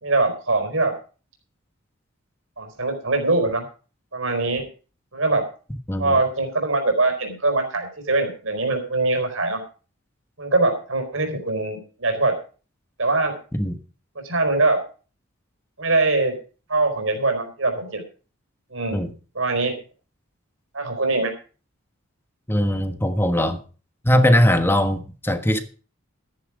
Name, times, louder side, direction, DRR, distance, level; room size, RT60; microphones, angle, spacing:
voice 1, 0.0-0.9 2.6-3.6 4.1-4.6 5.1-5.4 6.0-9.6 10.4-12.4 13.0-13.4 14.1-14.8 15.8-16.4 16.7-18.0 18.7-19.0 19.3-19.8 20.7-21.3, right 3 dB, 65° right, 4.5 m, -22 dB
voice 2, 22.5-23.6 24.0-25.6, equal, 10° left, 1.3 m, -20 dB
14.0 x 10.5 x 5.0 m
head